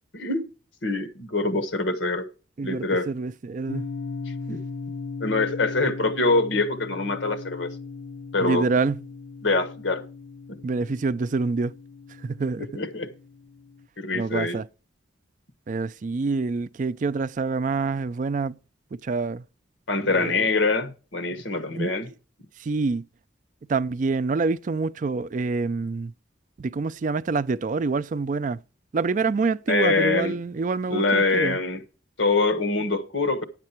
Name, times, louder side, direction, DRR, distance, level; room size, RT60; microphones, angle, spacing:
voice 1, 0.1-0.5 0.8-2.3 2.6-3.1 4.5-4.6 5.2-7.7 8.3-8.7 9.4-10.0 12.6-13.1 14.0-14.6 19.9-22.1 29.7-30.3 30.9-31.8 32.2-33.4, left 3 dB, 85° left, 1.4 m, -24 dB
voice 2, 2.6-3.9 8.4-9.0 10.6-11.8 12.2-12.8 14.1-14.7 15.7-18.6 18.9-19.4 20.1-20.5 21.8-22.1 22.6-23.0 23.7-26.1 26.6-28.6 28.9-31.6, right 4 dB, 45° right, 0.4 m, -26 dB
sound 1, 3.7-13.9, left 4 dB, 70° left, 0.7 m, -38 dB
10.5 x 7.5 x 4.4 m
head